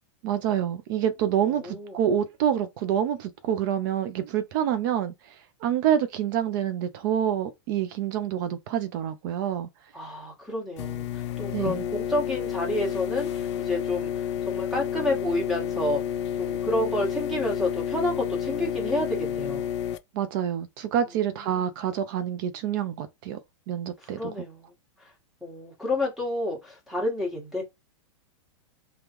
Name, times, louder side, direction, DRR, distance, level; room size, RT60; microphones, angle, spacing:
voice 1, 0.2-9.7 11.5-11.9 20.1-23.4 23.7-24.3, right 9 dB, 45° right, 0.5 m, -27 dB
voice 2, 1.4-2.0 9.9-16.0 16.4-19.7 21.5-21.7 24.1-24.7 25.0-25.1 25.4-27.6, left 1 dB, ahead, 1.4 m, -30 dB
sound 1, 10.8-20.0, left 9 dB, 65° left, 0.5 m, -30 dB
3.5 x 2.3 x 2.9 m
supercardioid pair, 150°, 16 cm